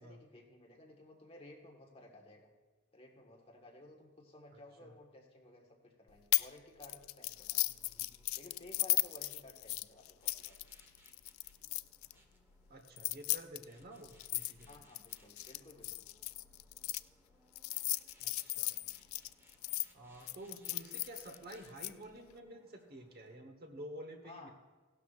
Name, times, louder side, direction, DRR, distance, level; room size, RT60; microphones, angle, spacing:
voice 1, 0.0-2.5 2.9-7.7 8.4-10.6 14.7-16.1 24.2-24.5, left 2 dB, 30° left, 1 dB, 1.5 m, -56 dB
voice 2, 4.5-4.9 12.7-14.8 18.2-18.7 19.9-24.5, right 1 dB, 50° right, 5 dB, 1.2 m, -50 dB
sound 1, 6.3-6.5 6.8-12.1 12.9-17.0 17.6-19.9 20.3-21.9, left 19 dB, 70° left, 0.3 m, -36 dB
sound 2, 7.1-23.4, equal, 10° right, 1.2 m, -68 dB
16.5 x 12.0 x 2.5 m, 1.3 s
head